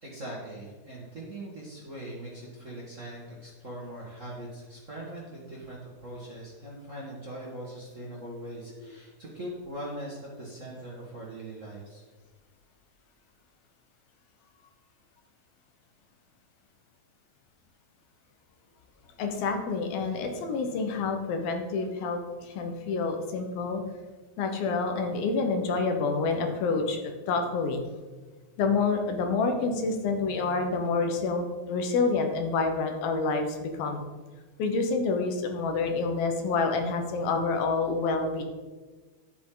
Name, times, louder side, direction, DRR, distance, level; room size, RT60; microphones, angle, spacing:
voice 1, 0.0-12.0, right 1 dB, 70° right, -5 dB, 0.7 m, -41 dB
voice 2, 19.2-23.8 24.4-27.8 28.6-34.0 34.6-38.4, left 4 dB, 75° left, 5 dB, 2.9 m, -28 dB
11.0 x 8.7 x 3.9 m, 1.3 s
omnidirectional pair, 4.3 m